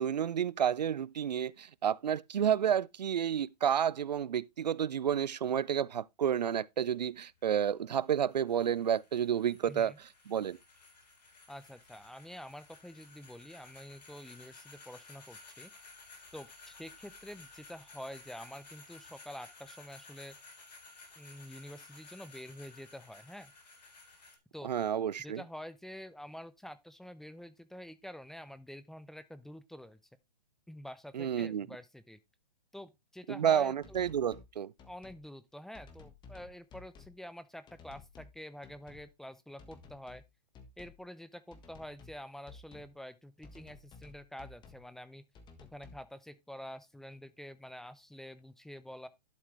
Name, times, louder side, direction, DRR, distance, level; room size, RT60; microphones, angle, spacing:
voice 1, 0.0-10.6 24.6-25.4 31.1-31.7 33.3-34.7, right 9 dB, 85° right, 0.5 m, -30 dB
sound 1, 6.9-24.4, left 3 dB, 75° left, 3.7 m, -55 dB
voice 2, 9.6-10.0 11.5-15.7 16.3-20.3 21.2-23.5 24.5-24.7 25.2-30.0 30.7-32.2 32.7-33.7 34.8-40.2 40.8-45.2 45.7-49.1, equal, ahead, 0.6 m, -47 dB
sound 2, 33.8-34.5 34.8-35.2 35.7-37.2 37.7-38.4 38.6-39.1 39.6-40.3 40.5-41.0 41.5-42.2 42.5-42.9 43.4-44.8 45.3-46.0, left 4 dB, 20° left, 1.5 m, -54 dB
11.5 x 5.9 x 3.2 m
hypercardioid pair, 120°, 21 cm